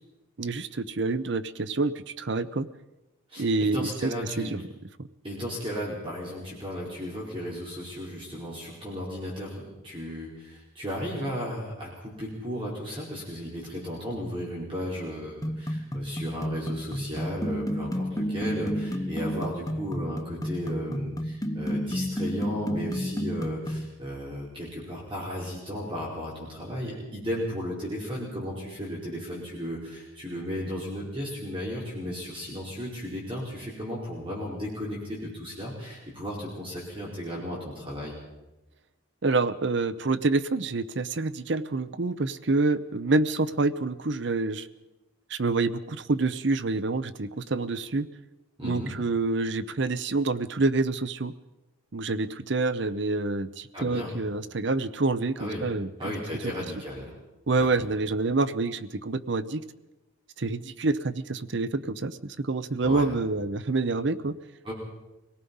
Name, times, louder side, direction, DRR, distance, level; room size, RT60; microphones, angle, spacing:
voice 1, 0.4-2.7 3.4-4.1 4.4-4.6 39.2-44.7 45.3-48.1 48.6-51.3 51.9-55.9 57.5-59.6 60.4-64.4, right 3 dB, 60° right, 13 dB, 0.7 m, -27 dB
voice 2, 3.3-4.5 5.2-38.2 48.6-48.9 53.7-54.1 55.4-55.6 56.0-57.1 57.6-57.8 62.8-63.1 64.6-64.7, equal, 25° right, -5 dB, 4.9 m, -35 dB
sound 1, 15.4-23.9, equal, 15° left, 0.8 m, -31 dB
25.5 x 18.5 x 5.5 m, 1.0 s
head